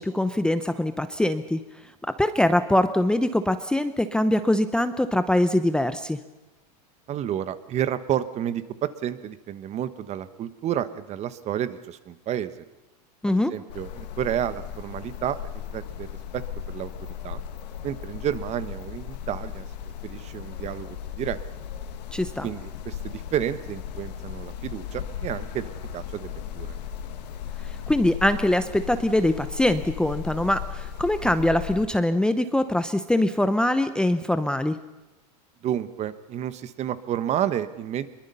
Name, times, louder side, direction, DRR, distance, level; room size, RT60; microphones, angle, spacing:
voice 1, 0.0-1.6 2.2-6.2 13.2-13.5 22.1-22.5 27.9-34.8, left 1 dB, 5° left, 10 dB, 0.8 m, -23 dB
voice 2, 7.1-12.5 13.3-15.4 15.7-16.1 16.3-17.4 17.8-19.7 20.0-21.4 22.4-26.8 35.6-38.1, right 10 dB, 35° right, 13 dB, 1.2 m, -30 dB
sound 1, 13.7-31.9, left 9 dB, 80° left, 1.9 m, -36 dB
23.5 x 22.5 x 5.6 m, 1.1 s
supercardioid pair, 125°, 21 cm